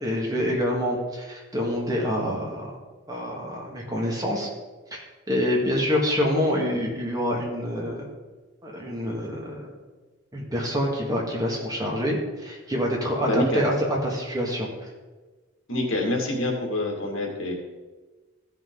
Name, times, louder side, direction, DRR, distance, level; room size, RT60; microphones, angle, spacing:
voice 1, 0.0-2.7 3.1-4.5 4.9-5.0 5.3-8.0 8.6-9.7 10.3-14.7, equal, 20° right, -2 dB, 1.8 m, -26 dB
voice 2, 13.2-13.6 15.7-17.5, left 1 dB, 75° left, 0 dB, 2.1 m, -26 dB
15.0 x 5.7 x 3.9 m, 1.3 s
head